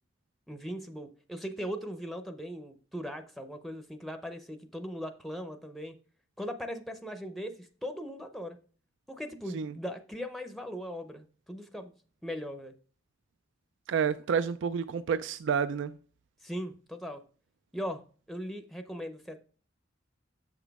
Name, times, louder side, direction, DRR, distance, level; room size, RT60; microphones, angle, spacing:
voice 1, 0.5-6.0 6.4-8.6 9.1-11.9 12.2-12.8 16.4-17.2 17.7-19.4, equal, ahead, 0.6 m, -39 dB
voice 2, 13.9-16.0, right 6 dB, 65° right, 0.3 m, -29 dB
7.2 x 6.0 x 3.4 m
head